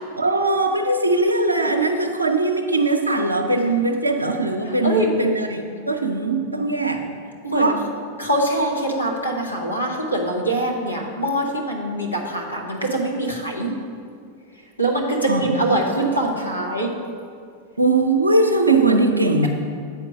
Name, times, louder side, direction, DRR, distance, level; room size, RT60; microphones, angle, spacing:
voice 1, 0.2-7.0 7.5-7.8 15.3-15.6 17.8-19.5, right 2 dB, 85° right, 3 dB, 0.6 m, -20 dB
voice 2, 4.8-5.2 7.4-7.7 8.2-13.7 14.8-16.9, right 1 dB, 85° left, -1 dB, 1.0 m, -23 dB
8.1 x 4.5 x 6.1 m, 2.2 s
figure-of-eight pair, 90°, 0 cm